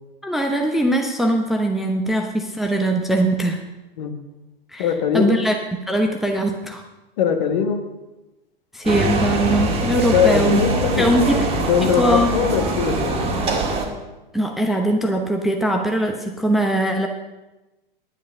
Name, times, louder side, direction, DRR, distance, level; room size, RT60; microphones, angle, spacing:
voice 1, 0.2-3.6 4.7-5.5 5.9-6.8 8.7-10.6 11.0-11.5 11.8-12.3 14.3-17.1, right 1 dB, ahead, 2 dB, 0.9 m, -21 dB
voice 2, 4.8-5.4 7.2-7.8 10.1-13.3, left 7 dB, 45° left, 7 dB, 1.4 m, -21 dB
sound 1, 8.8-13.8, right 2 dB, 20° right, 1.9 m, -23 dB
10.0 x 9.6 x 5.6 m, 1.0 s
figure-of-eight pair, 100°, 30 cm